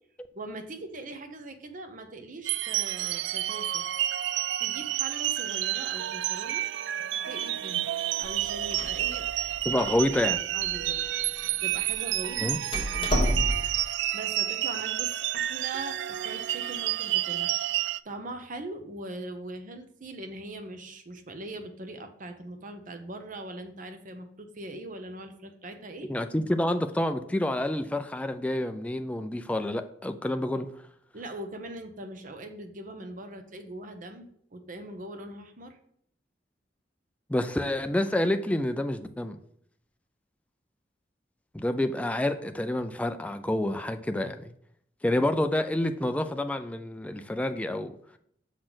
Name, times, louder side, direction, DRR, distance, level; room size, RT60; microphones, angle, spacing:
voice 1, 0.3-3.8 4.6-6.7 7.2-7.9 8.2-9.3 9.7-9.8 10.5-11.0 11.6-13.1 14.1-17.5 18.0-26.1 31.1-35.8, right 2 dB, 50° right, 7 dB, 0.9 m, -41 dB
sound 1, 2.4-18.0, right 13 dB, 80° right, 0.3 m, -30 dB
Door, 8.2-13.8, equal, 30° left, 1.5 m, -33 dB
voice 2, 9.7-10.4 12.4-12.6 26.1-30.7 37.3-39.4 41.5-44.5 45.0-47.9, left 1 dB, 10° left, 8 dB, 0.3 m, -28 dB
6.3 x 4.1 x 6.0 m, 0.69 s
head